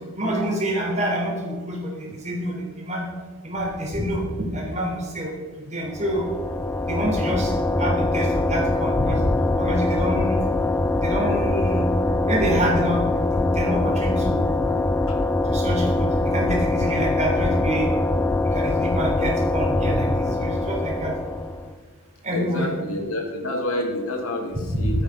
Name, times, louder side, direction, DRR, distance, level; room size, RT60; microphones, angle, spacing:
voice 1, 0.1-3.0 3.4-4.2 4.5-5.3 5.7-6.3 6.8-7.5 7.8-9.2 9.6-10.4 11.0-11.9 12.3-14.8 15.5-17.9 18.4-21.1 22.2-22.7 24.7-24.9, equal, 30° right, -1 dB, 3.6 m, -27 dB
sound 1, 5.9-21.7, left 2 dB, 10° left, 0.4 m, -23 dB
voice 2, 22.3-25.0, left 1 dB, 70° left, 2 dB, 2.4 m, -28 dB
12.5 x 9.1 x 5.8 m, 1.4 s
head